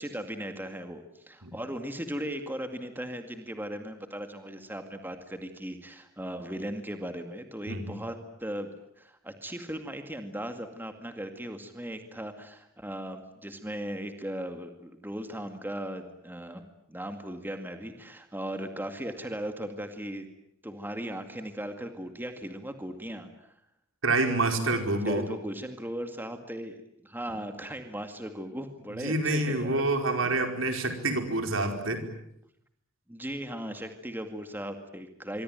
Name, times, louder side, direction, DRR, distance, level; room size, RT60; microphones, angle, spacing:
voice 1, 0.0-8.7 9.0-16.6 16.9-20.3 20.6-23.5 25.0-26.8 27.0-30.3 33.1-35.4, equal, 10° right, 6 dB, 2.1 m, -37 dB
voice 2, 24.0-25.2 29.0-32.1, right 2 dB, 70° right, 5 dB, 4.8 m, -27 dB
26.0 x 24.0 x 9.1 m, 0.76 s
head